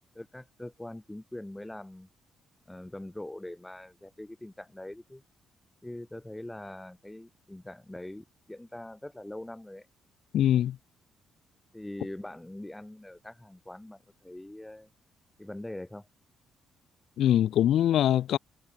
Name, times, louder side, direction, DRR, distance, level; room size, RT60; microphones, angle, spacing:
voice 1, 0.1-2.1 2.7-5.2 5.8-9.9 11.7-14.9 15.4-16.1, left 1 dB, 10° left, 3.4 m, -43 dB
voice 2, 10.3-10.8 17.2-18.4, left 11 dB, 75° left, 1.4 m, -23 dB
cardioid pair, 90°, 0 cm